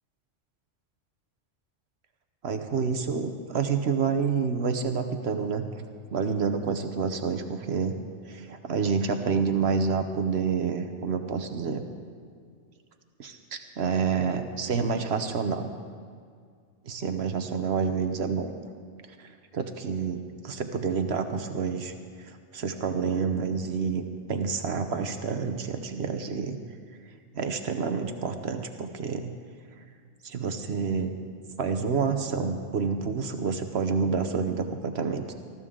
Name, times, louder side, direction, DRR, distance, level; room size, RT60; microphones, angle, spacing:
voice 1, 2.4-5.6 6.1-8.0 8.3-11.9 13.2-15.7 16.8-18.5 19.2-21.9 22.2-26.6 27.3-29.3 30.2-31.1 31.6-35.3, right 5 dB, 60° right, 7 dB, 1.0 m, -28 dB
19.5 x 14.0 x 3.7 m, 2.1 s
omnidirectional pair, 1.3 m